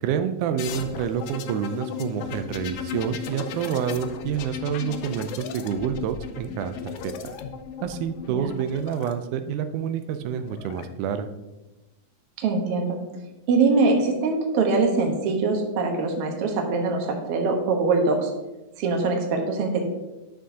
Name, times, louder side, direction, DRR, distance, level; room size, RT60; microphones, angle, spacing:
voice 1, 0.0-7.3 7.8-11.3, right 8 dB, 90° right, 8 dB, 2.0 m, -28 dB
sound 1, 0.6-9.1 10.2-10.8, left 7 dB, 90° left, 1.3 m, -36 dB
voice 2, 12.4-13.0 13.5-18.3 18.8-19.8, right 3 dB, 60° right, 2 dB, 1.8 m, -23 dB
11.5 x 6.3 x 2.8 m, 1.1 s
omnidirectional pair, 3.4 m